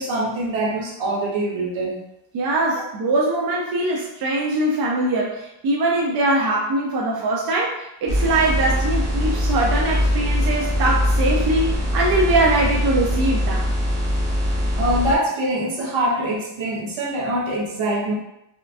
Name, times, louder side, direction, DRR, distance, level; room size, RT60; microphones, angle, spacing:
voice 1, 0.0-2.0 14.8-18.1, right 1 dB, 70° right, -3 dB, 1.0 m, -24 dB
voice 2, 2.3-13.6, right 2 dB, 50° right, -3 dB, 0.5 m, -22 dB
sound 1, 8.1-15.1, equal, 5° right, 0.6 m, -22 dB
4.3 x 2.4 x 2.4 m, 0.85 s
cardioid pair, 175°, 48 cm